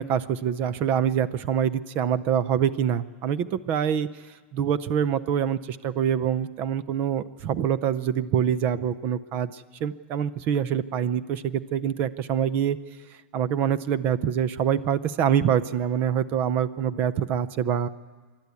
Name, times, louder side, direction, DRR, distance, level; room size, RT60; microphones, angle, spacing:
voice 1, 0.0-4.1 4.5-12.8 13.3-17.9, right 9 dB, 30° right, 15 dB, 0.6 m, -25 dB
27.0 x 12.0 x 9.6 m, 1.4 s
supercardioid pair, 170°, 7 cm